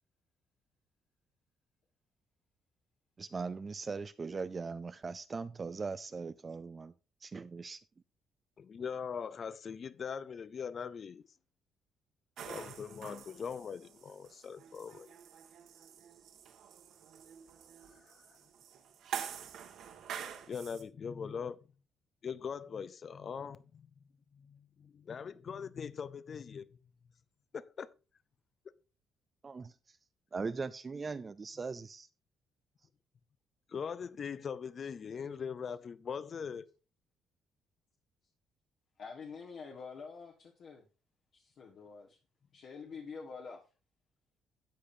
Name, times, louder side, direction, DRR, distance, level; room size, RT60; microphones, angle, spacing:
voice 1, 3.2-6.9 7.2-7.8 29.4-29.7 30.3-32.1, right 4 dB, 25° right, 0.4 m, -40 dB
voice 2, 8.6-11.2 12.4-15.1 18.0-18.2 20.5-21.6 22.2-23.9 24.3-26.7 27.5-27.9 33.7-36.7, left 6 dB, 40° left, 0.5 m, -41 dB
sound 1, 12.4-20.8, right 8 dB, 70° right, 1.8 m, -46 dB
voice 3, 39.0-40.8 41.3-42.2 42.5-43.6, left 5 dB, 55° left, 1.5 m, -47 dB
13.0 x 8.7 x 2.7 m
cardioid pair, 140°, 0 cm